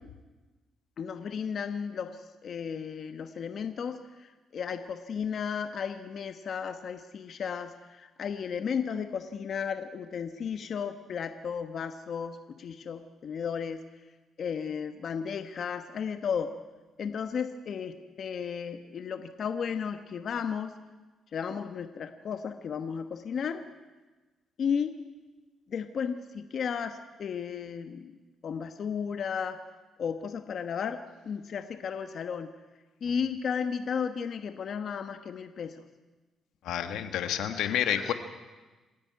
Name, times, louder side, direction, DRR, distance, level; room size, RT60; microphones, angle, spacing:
voice 1, 1.0-13.8 14.4-16.5 17.0-20.7 21.3-23.6 24.6-24.9 25.7-28.1 28.4-29.6 30.0-32.5 33.0-35.8 37.5-38.1, left 7 dB, 55° left, 8 dB, 1.1 m, -34 dB
voice 2, 36.6-38.1, left 10 dB, 85° left, 9 dB, 1.4 m, -29 dB
26.5 x 10.5 x 9.5 m, 1.2 s
cardioid pair, 90°, 0 cm